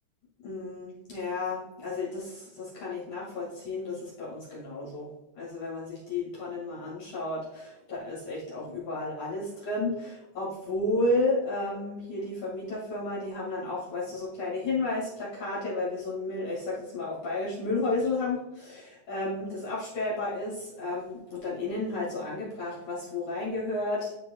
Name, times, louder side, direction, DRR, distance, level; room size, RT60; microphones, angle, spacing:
voice 1, 0.4-5.1 5.3-24.1, left 2 dB, 50° left, -7 dB, 2.7 m, -32 dB
12.5 x 4.6 x 2.2 m, 0.99 s
omnidirectional pair, 5.2 m